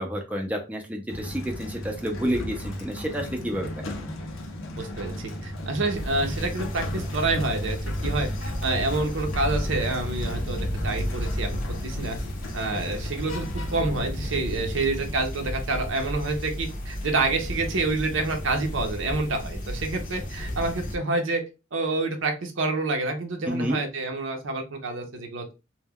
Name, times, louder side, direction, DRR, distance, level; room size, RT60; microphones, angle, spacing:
voice 1, 0.0-4.0 23.5-23.8, equal, 10° right, 2 dB, 0.4 m, -30 dB
Sliding door, 1.1-13.8, equal, 85° left, 0.6 m, -35 dB
voice 2, 4.8-12.2 12.5-21.4 21.7-25.5, right 3 dB, 70° right, 4 dB, 0.6 m, -28 dB
sound 1, 5.9-21.0, equal, 45° left, 0.6 m, -33 dB
2.2 x 2.1 x 3.4 m, 0.29 s
head